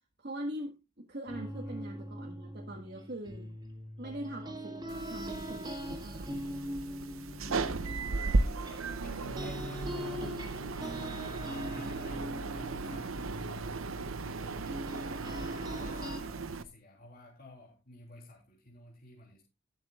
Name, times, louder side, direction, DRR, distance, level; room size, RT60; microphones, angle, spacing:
voice 1, 0.2-3.5 4.0-6.3, right 1 dB, 50° right, 1 dB, 1.6 m, -42 dB
sound 1, 1.3-9.1 9.4-16.2, equal, 20° right, 2.9 m, -41 dB
sound 2, 4.9-16.6, right 3 dB, 90° right, 0.8 m, -36 dB
voice 2, 6.3-6.7 8.3-10.4 10.9-13.8 14.2-14.8 15.7-19.4, left 2 dB, 45° left, -2 dB, 3.2 m, -52 dB
19.0 x 7.2 x 2.4 m, 0.25 s
head